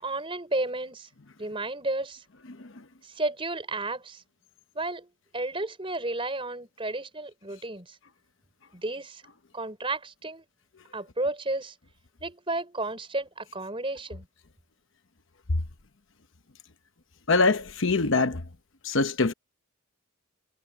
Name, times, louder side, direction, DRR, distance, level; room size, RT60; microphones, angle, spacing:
voice 1, 0.0-1.1 1.4-2.2 3.0-4.2 4.7-5.1 5.3-8.0 8.7-9.2 9.5-10.4 10.9-11.7 12.2-14.3, right 2 dB, 25° right, 4.5 m, -32 dB
voice 2, 17.3-18.4 18.8-19.3, left 3 dB, 60° left, 1.0 m, -23 dB
head